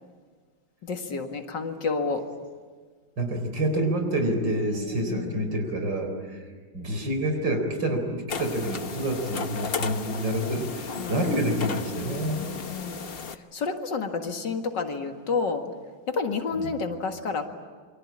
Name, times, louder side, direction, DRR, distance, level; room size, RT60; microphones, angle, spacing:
voice 1, 0.8-2.2 4.8-5.4 11.0-11.2 12.0-13.0 13.5-15.6 16.1-17.4, left 4 dB, 60° left, 5 dB, 2.4 m, -30 dB
voice 2, 3.2-6.1 6.7-12.4 16.6-16.7, right 1 dB, 60° right, 5 dB, 4.7 m, -27 dB
sound 1, 8.3-13.4, left 5 dB, 40° left, 0.9 m, -34 dB
28.0 x 24.0 x 8.7 m, 1.5 s
omnidirectional pair, 2.2 m